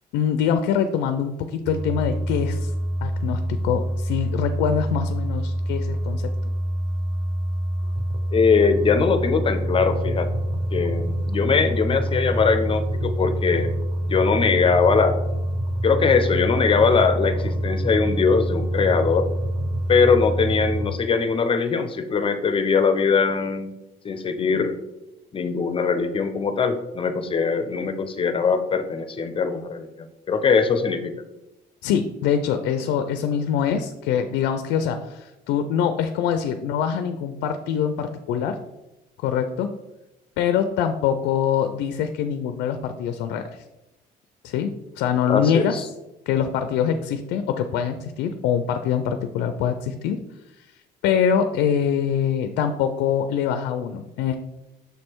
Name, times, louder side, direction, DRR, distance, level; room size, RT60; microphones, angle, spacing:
voice 1, 0.1-2.7 3.0-6.3 31.8-38.6 39.2-39.7 40.4-43.6 44.4-45.8 46.3-50.2 50.6-50.7 51.0-54.4, left 8 dB, 90° left, 8 dB, 0.4 m, -24 dB
sound 1, 1.6-20.9, right 1 dB, 25° right, 0.7 m, -26 dB
voice 2, 8.3-10.3 10.7-13.8 14.1-15.2 15.8-19.3 19.9-23.7 24.0-24.8 25.3-31.1 45.3-45.8, left 5 dB, 30° left, 9 dB, 0.6 m, -21 dB
6.6 x 3.2 x 4.4 m, 0.98 s
cardioid pair, 110°, 17 cm